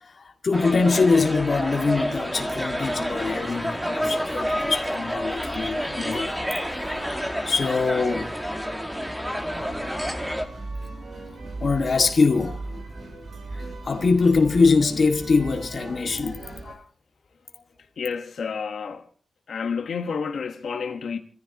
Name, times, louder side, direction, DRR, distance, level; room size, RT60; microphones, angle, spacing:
voice 1, 0.0-6.4 6.7-8.3 11.6-12.7 13.5-16.8, left 4 dB, 45° left, 2.0 m, -23 dB
sound 1, 0.5-10.4, equal, 5° right, 1.9 m, -29 dB
sound 2, 9.5-16.7, right 2 dB, 75° right, 6.6 m, -38 dB
voice 2, 18.0-19.0 19.5-21.2, left 5 dB, 90° left, 1.4 m, -30 dB
28.5 x 14.5 x 3.0 m
wide cardioid pair, 170°, 0 cm